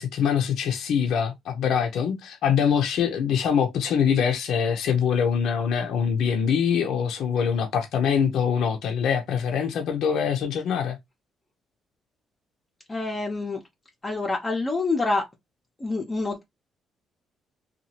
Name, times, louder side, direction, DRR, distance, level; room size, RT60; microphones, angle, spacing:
voice 1, 0.0-11.0, left 7 dB, 80° left, 0.5 m, -24 dB
voice 2, 12.9-13.6 14.0-15.2 15.8-16.4, left 3 dB, 25° left, 0.6 m, -26 dB
2.7 x 2.3 x 2.8 m
cardioid pair, 90°, 0 cm